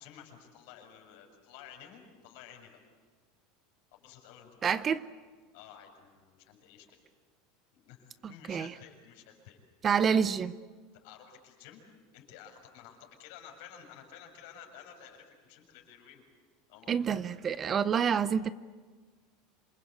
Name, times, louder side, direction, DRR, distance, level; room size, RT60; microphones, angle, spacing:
voice 1, 0.0-2.8 3.9-4.9 5.5-7.0 7.7-9.6 10.9-11.8 12.1-16.2 16.7-17.2, left 8 dB, 70° left, 6.7 m, -52 dB
voice 2, 4.6-5.0 8.2-8.7 9.8-10.6 16.9-18.5, right 7 dB, 25° right, 0.7 m, -28 dB
27.5 x 23.5 x 8.2 m
supercardioid pair, 140°, 0 cm